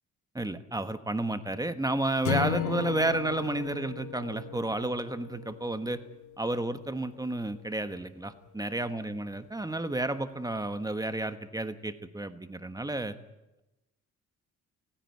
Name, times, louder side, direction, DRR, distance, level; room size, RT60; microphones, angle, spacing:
voice 1, 0.3-6.0 6.4-13.2, right 2 dB, 10° right, 10 dB, 1.3 m, -31 dB
sound 1, 2.2-6.6, left 8 dB, 75° left, 2.2 m, -35 dB
30.0 x 10.0 x 9.6 m, 0.97 s
cardioid pair, 90°, 30 cm